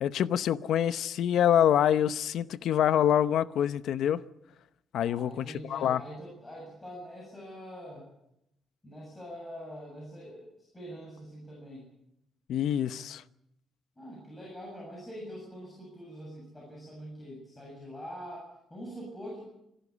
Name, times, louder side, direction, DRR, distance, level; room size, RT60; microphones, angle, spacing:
voice 1, 0.0-4.2 4.9-6.0 12.5-13.2, left 10 dB, 65° left, 0.8 m, -26 dB
voice 2, 5.0-8.1 8.8-11.9 14.0-19.5, equal, 10° left, 7.1 m, -44 dB
26.0 x 12.5 x 9.7 m
cardioid pair, 155°, 0 cm